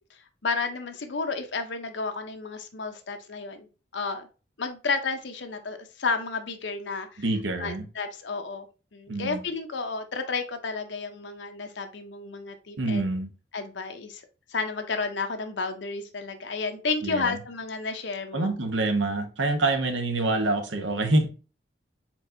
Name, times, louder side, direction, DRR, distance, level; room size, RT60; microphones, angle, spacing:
voice 1, 0.4-3.7 3.9-4.3 4.6-7.2 7.6-8.7 8.9-13.0 13.5-14.2 14.5-18.5, left 4 dB, 80° left, 0.7 m, -31 dB
voice 2, 7.2-7.9 9.1-9.4 12.8-13.3 17.0-17.4 18.3-21.3, right 2 dB, 90° right, 0.9 m, -26 dB
4.5 x 4.3 x 2.6 m
head